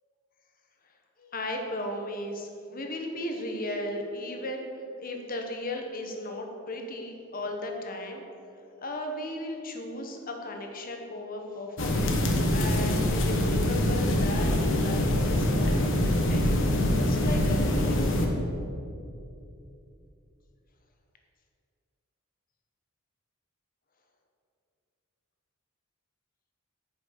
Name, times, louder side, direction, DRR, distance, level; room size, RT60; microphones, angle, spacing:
voice 1, 1.2-4.7 5.0-18.4, left 1 dB, 40° left, 3 dB, 1.2 m, -36 dB
sound 1, 11.8-18.3, left 1 dB, 60° left, 1.3 m, -24 dB
9.5 x 6.2 x 6.6 m, 2.7 s
head